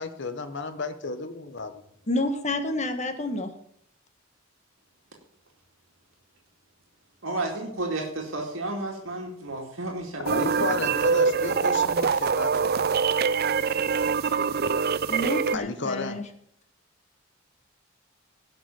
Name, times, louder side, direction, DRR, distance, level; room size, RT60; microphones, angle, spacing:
voice 1, 0.0-1.8 10.2-12.7 15.5-16.2, left 3 dB, 60° left, 10 dB, 1.2 m, -33 dB
voice 2, 2.1-3.5 15.1-16.3, left 1 dB, 35° left, 8 dB, 1.5 m, -29 dB
voice 3, 7.2-11.0, right 2 dB, 75° right, 0 dB, 2.4 m, -32 dB
sound 1, 10.3-15.6, right 5 dB, 50° right, 0.5 m, -24 dB
17.5 x 6.1 x 7.1 m, 0.71 s
head